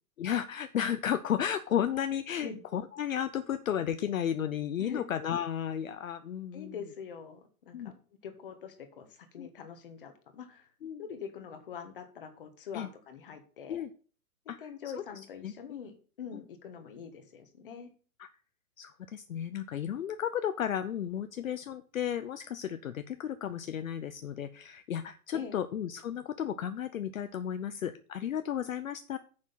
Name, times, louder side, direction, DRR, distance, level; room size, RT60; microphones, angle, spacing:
voice 1, 0.2-6.7 7.7-7.9 9.4-9.5 10.8-11.0 12.7-12.9 13.7-13.9 14.5-14.7 14.9-15.0 15.4-15.8 16.3-16.4 18.2-18.3 18.8-29.2, left 9 dB, 60° left, 11 dB, 0.7 m, -33 dB
voice 2, 6.5-10.7 11.0-13.8 14.6-17.9 25.3-25.6, left 7 dB, 35° left, 7 dB, 1.4 m, -44 dB
7.4 x 6.2 x 5.7 m, 0.40 s
hypercardioid pair, 175°, 44 cm